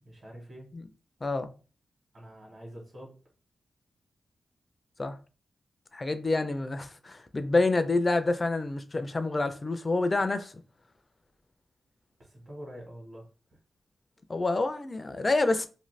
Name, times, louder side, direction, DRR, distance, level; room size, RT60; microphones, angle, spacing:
voice 1, 0.0-0.7 2.1-3.2 12.2-13.3, equal, 50° right, 1.1 m, -45 dB
voice 2, 5.9-10.5 14.3-15.7, left 2 dB, 30° left, 0.3 m, -27 dB
2.5 x 2.5 x 3.1 m
wide cardioid pair, 130°, 0 cm